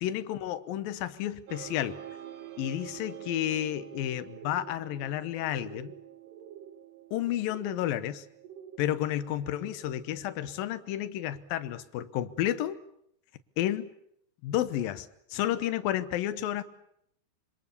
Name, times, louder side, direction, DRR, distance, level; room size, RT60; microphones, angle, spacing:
voice 1, 0.0-2.0 2.6-5.9 7.1-8.3 8.8-12.8 13.6-13.9 14.4-16.6, left 12 dB, 70° left, 13 dB, 2.6 m, -31 dB
sound 1, 1.5-10.7, right 12 dB, 65° right, 1.7 m, -48 dB
sound 2, 4.3-4.8 5.5-6.0 6.3-6.8 7.4-7.9 8.4-9.0, right 8 dB, 85° right, 4.1 m, -48 dB
26.0 x 26.0 x 7.0 m, 0.73 s
omnidirectional pair, 4.6 m